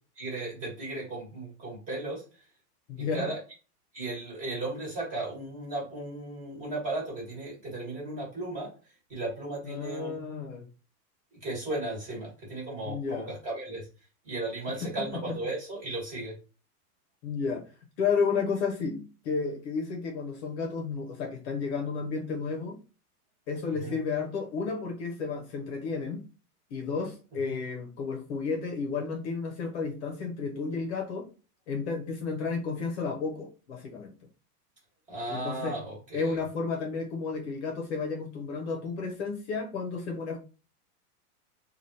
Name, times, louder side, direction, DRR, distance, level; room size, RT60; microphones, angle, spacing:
voice 1, 0.2-2.2 3.0-3.4 3.9-8.7 9.1-10.2 11.3-13.9 14.2-16.3 23.8-24.0 27.4-27.6 35.1-36.4, right 2 dB, 15° right, -4 dB, 1.2 m, -35 dB
voice 2, 2.9-3.3 9.6-10.7 12.8-13.4 15.1-15.4 17.2-17.6 18.0-22.8 23.5-26.2 26.7-31.3 31.7-34.1 35.3-35.8 36.1-40.4, left 5 dB, 45° left, 3 dB, 0.7 m, -32 dB
3.3 x 2.3 x 2.7 m, 0.34 s
supercardioid pair, 160°, 47 cm